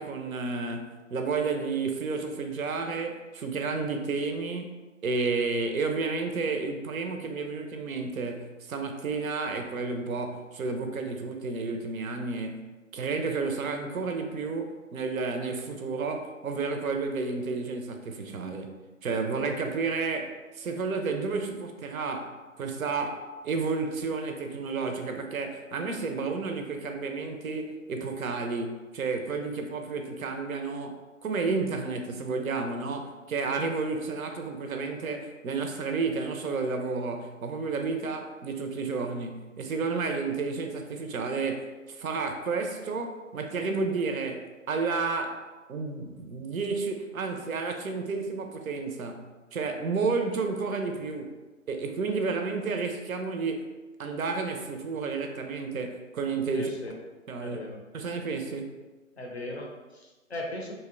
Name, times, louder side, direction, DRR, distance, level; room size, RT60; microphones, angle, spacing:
voice 1, 0.0-4.7 5.0-18.7 19.0-45.4 45.7-51.3 51.7-53.7 54.0-56.7 57.3-57.6 57.9-58.8, right 4 dB, 80° right, 5 dB, 0.5 m, -31 dB
voice 2, 56.5-56.9 57.4-57.8 59.2-60.8, left 1 dB, 50° left, 0 dB, 0.4 m, -38 dB
2.7 x 2.0 x 2.4 m, 1.2 s
figure-of-eight pair, 160°, 42 cm